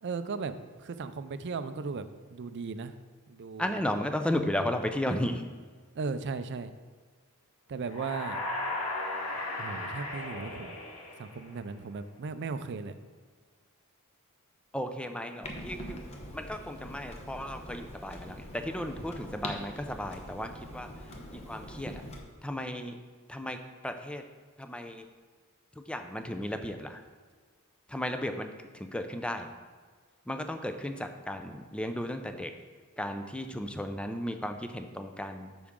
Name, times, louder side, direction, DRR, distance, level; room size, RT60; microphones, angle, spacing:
voice 1, 0.0-2.9 3.3-3.8 5.9-6.7 7.7-8.4 9.6-10.8 11.2-13.0, right 4 dB, 55° right, 11 dB, 0.4 m, -37 dB
voice 2, 3.6-5.4 14.7-16.0 16.3-20.9 21.3-22.0 22.4-23.0 23.3-23.6 23.8-24.2 24.6-25.1 25.8-27.0 27.9-29.5 30.3-32.5 33.0-35.7, left 1 dB, 5° left, 7 dB, 0.5 m, -34 dB
sound 1, 7.8-11.7, left 2 dB, 90° left, 1.7 m, -36 dB
Clock, 15.4-22.2, left 1 dB, 30° left, 0.8 m, -43 dB
8.5 x 6.1 x 3.7 m, 1.5 s
head